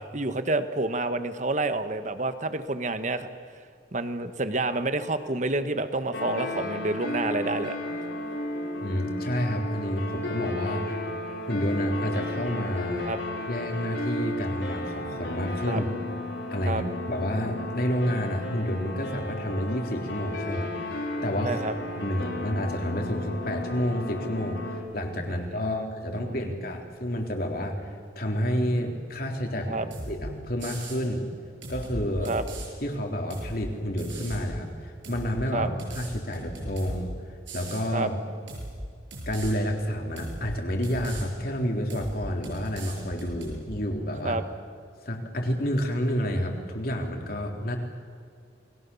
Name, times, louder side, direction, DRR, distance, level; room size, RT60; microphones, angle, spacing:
voice 1, 0.1-3.3 3.9-7.8 13.0-13.2 15.7-15.8 16.6-16.8 21.4-21.7 25.7-25.8 26.2-26.5 29.7-29.9 32.3-32.4 35.5-35.7 37.9-38.1 44.2-44.4, right 2 dB, 40° right, 10 dB, 1.3 m, -28 dB
sound 1, 6.1-24.8, left 1 dB, 80° left, 5.5 m, -33 dB
voice 2, 8.8-11.0 11.4-13.1 13.5-15.9 16.5-21.6 22.0-27.9 28.2-31.2 31.7-32.3 32.8-37.1 37.5-38.2 39.3-44.4 45.1-47.8, equal, 55° left, 2 dB, 3.6 m, -29 dB
sound 2, 29.9-30.2 30.6-31.0 31.6-32.7 33.3-33.6 34.0-34.5 35.0-35.3 35.8-37.0 37.5-37.8 38.5-38.7 39.1-39.5 40.2-40.4 40.8-41.2 41.9-42.2 42.4-43.6, right 1 dB, 85° right, 7.6 m, -38 dB
29.0 x 21.5 x 7.1 m, 2.2 s
head